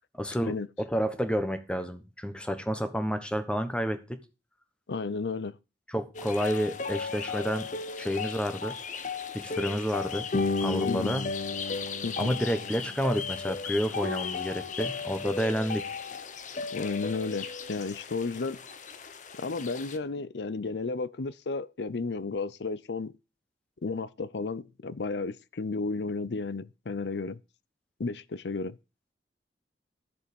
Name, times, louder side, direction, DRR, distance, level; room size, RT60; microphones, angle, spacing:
voice 1, 0.2-4.2 5.9-7.7 8.0-8.7 9.3-10.3 10.6-11.3 12.2-15.8, equal, 5° left, 1.2 m, -30 dB
voice 2, 4.9-5.6 10.8-11.1 12.0-12.4 16.7-18.6 19.4-23.1 23.8-27.4 28.0-28.8, left 4 dB, 75° left, 0.6 m, -33 dB
sound 1, 6.1-20.0, left 4 dB, 45° left, 0.9 m, -34 dB
12.0 x 7.3 x 5.3 m
head